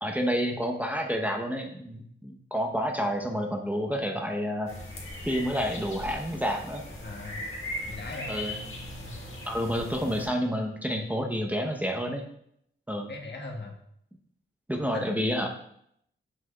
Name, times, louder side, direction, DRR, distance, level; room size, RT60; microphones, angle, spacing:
voice 1, 0.0-4.7 5.3-6.8 8.3-8.5 9.5-12.2 12.9-13.1 14.7-15.5, equal, 10° right, 2 dB, 0.8 m, -29 dB
sound 1, 4.7-10.3, left 1 dB, 90° left, 1.5 m, -39 dB
voice 2, 7.0-7.5 7.9-8.3 9.0-9.2 13.1-13.7 14.9-15.5, left 2 dB, 65° left, 1 dB, 1.3 m, -39 dB
7.7 x 6.0 x 2.3 m, 0.70 s
wide cardioid pair, 95°, 20 cm